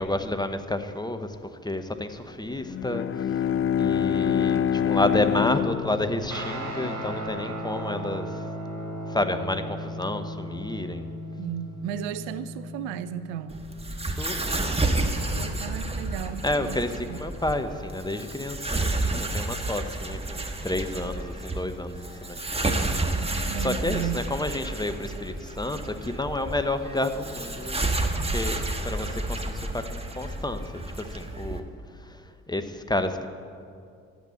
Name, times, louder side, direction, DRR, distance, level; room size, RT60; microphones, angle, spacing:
voice 1, 0.0-1.4 1.6-3.4 3.8-8.4 9.1-11.1 14.2-14.7 16.4-22.4 22.6-27.8 28.2-28.6 28.8-30.6 31.0-31.6 31.9-33.3, left 1 dB, 10° left, 8 dB, 1.0 m, -30 dB
Bowed string instrument, 2.6-7.3, left 8 dB, 35° left, 0.4 m, -26 dB
Guitar, 6.3-15.1, equal, 45° right, 3.1 m, -36 dB
voice 2, 11.4-13.6 15.3-17.2 23.5-24.2, right 11 dB, 75° right, 14 dB, 0.6 m, -34 dB
sound 1, 13.5-31.6, right 2 dB, 15° right, 1.5 m, -30 dB
12.5 x 8.1 x 8.4 m, 2.4 s
hypercardioid pair, 45°, 41 cm